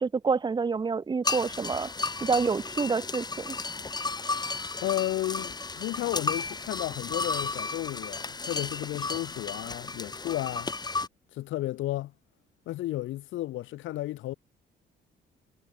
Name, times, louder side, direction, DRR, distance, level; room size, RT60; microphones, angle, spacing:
voice 1, 0.0-1.9 2.2-3.6, right 5 dB, 20° right, 0.6 m, -27 dB
sound 1, 1.2-11.1, left 3 dB, 20° left, 1.2 m, -33 dB
voice 2, 4.8-10.7 11.3-12.1 12.7-14.3, left 15 dB, 80° left, 0.7 m, -33 dB
cardioid pair, 90°, 20 cm